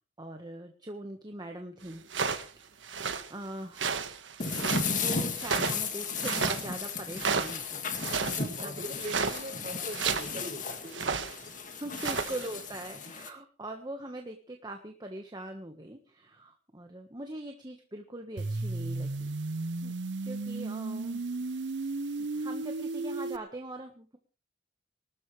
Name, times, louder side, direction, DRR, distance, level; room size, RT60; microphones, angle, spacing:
voice 1, 0.2-2.0 2.5-4.0 4.9-8.7 11.0-11.2 11.7-19.3 19.8-19.9 20.2-21.2 22.3-24.2, right 1 dB, 25° right, 4 dB, 1.4 m, -42 dB
sound 1, 2.1-2.5 2.8-3.3 3.8-4.9 5.4-5.9 6.2-6.6 7.1-7.6 8.0-8.4 9.0-9.4 9.9-10.3 10.9-11.3 11.8-12.5, right 5 dB, 90° right, 1.6 m, -31 dB
sound 2, 4.4-13.3, left 4 dB, 45° left, 2.1 m, -35 dB
voice 2, 8.4-11.0 13.0-13.1, right 1 dB, 40° right, 1 dB, 5.6 m, -41 dB
sound 3, 18.4-23.4, right 3 dB, 70° right, 0.7 m, -34 dB
24.0 x 13.0 x 3.4 m, 0.35 s
head